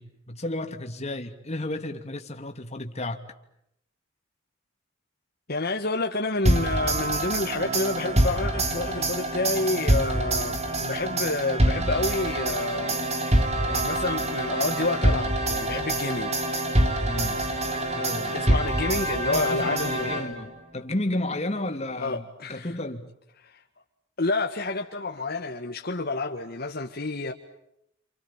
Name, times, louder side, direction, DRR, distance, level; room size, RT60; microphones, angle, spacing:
voice 1, 0.0-3.2 17.0-17.4 17.9-18.4 19.2-22.2 22.5-23.1, left 1 dB, 35° left, 2.9 m, -32 dB
voice 2, 5.5-16.7 18.3-20.5 22.0-22.7 23.4-23.6 24.2-27.3, left 2 dB, 55° left, 1.7 m, -29 dB
sound 1, 6.5-20.6, right 1 dB, 35° right, 3.4 m, -25 dB
28.5 x 28.0 x 7.3 m
head